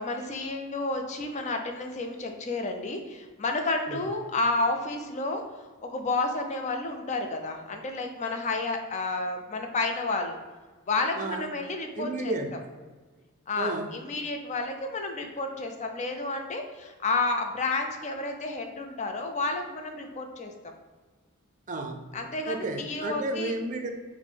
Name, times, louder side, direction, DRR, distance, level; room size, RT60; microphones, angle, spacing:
voice 1, 0.0-5.4 5.8-10.4 10.9-12.4 13.5-20.7 22.1-23.5, left 3 dB, 35° left, 4 dB, 0.4 m, -31 dB
voice 2, 12.0-12.6 13.6-13.9 21.7-22.1 22.5-23.9, right 2 dB, 35° right, 3 dB, 0.4 m, -32 dB
4.2 x 2.1 x 4.4 m, 1.3 s
head